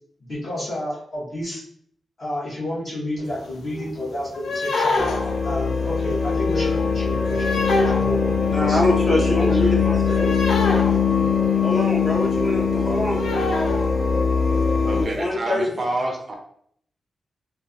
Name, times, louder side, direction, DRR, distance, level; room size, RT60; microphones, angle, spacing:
voice 1, 0.2-1.6 2.2-5.1 5.4-8.8 9.3-9.5 15.7-15.9, left 1 dB, 45° left, -7 dB, 1.3 m, -31 dB
sound 1, 3.3-3.4 3.6-3.9 4.3-11.7 12.1-12.3 12.6-12.7 12.9-14.2 14.6-14.7 15.1-15.2, left 3 dB, 80° left, 0.4 m, -27 dB
sound 2, 5.0-15.0, left 5 dB, 60° left, 1.2 m, -21 dB
voice 2, 8.5-10.3 11.6-13.2 14.9-15.7, left 1 dB, 30° left, -3 dB, 0.7 m, -24 dB
voice 3, 14.9-16.3, right 2 dB, 40° right, 2 dB, 0.5 m, -28 dB
3.2 x 2.2 x 2.5 m, 0.64 s
wide cardioid pair, 115°, 0 cm